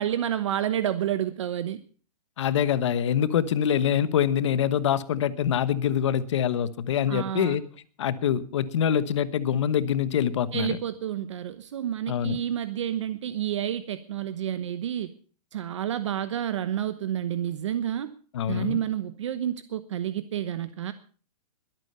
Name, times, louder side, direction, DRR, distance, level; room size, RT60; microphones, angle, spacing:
voice 1, 0.0-1.8 7.1-7.6 10.5-15.1 15.5-18.1 18.5-20.9, right 10 dB, 50° right, 12 dB, 1.0 m, -29 dB
voice 2, 2.4-7.6 8.0-10.8 12.1-12.4 18.3-18.8, left 9 dB, 50° left, 15 dB, 1.2 m, -25 dB
21.5 x 9.0 x 5.5 m, 0.41 s
hypercardioid pair, 175°, 20 cm